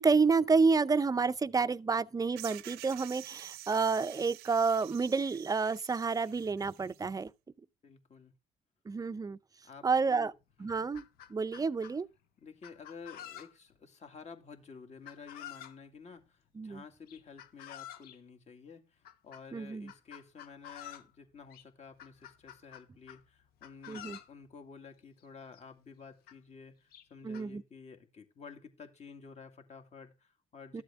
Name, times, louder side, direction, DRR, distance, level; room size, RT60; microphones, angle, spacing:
voice 1, 0.0-7.3 8.9-9.4 9.8-10.3 10.6-11.0 11.3-12.1 16.6-16.8 19.5-19.9 23.9-24.2 27.2-27.6 30.7-30.8, right 4 dB, 25° right, 0.5 m, -29 dB
sound 1, 2.4-7.1, right 16 dB, 85° right, 0.7 m, -49 dB
voice 2, 7.8-8.3 9.6-10.3 10.6-10.9 12.4-30.8, left 5 dB, 45° left, 2.3 m, -51 dB
Chicken rooster, 10.0-10.1 10.5-12.0 12.6-13.8 15.1-15.8 17.1-18.2 19.0-19.4 19.9-21.1 21.5-21.6 22.0-23.2 23.6-24.3 25.2-25.3 25.5-25.6 26.3-26.4 26.9-27.4, left 11 dB, 75° left, 1.1 m, -49 dB
12.5 x 7.6 x 3.5 m
supercardioid pair, 75°, 16 cm